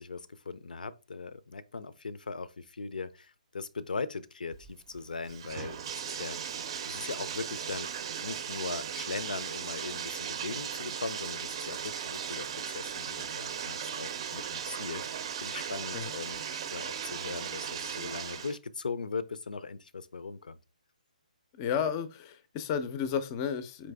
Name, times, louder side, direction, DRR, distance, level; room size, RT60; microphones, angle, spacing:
voice 1, 0.0-6.4 6.9-16.4 16.7-20.6, left 4 dB, 80° left, 0.4 m, -39 dB
Bathtub (filling or washing), 4.5-18.6, right 8 dB, 40° right, 0.5 m, -37 dB
voice 2, 21.5-23.9, left 7 dB, 25° left, 0.4 m, -32 dB
4.0 x 3.1 x 3.4 m
hypercardioid pair, 150°, 4 cm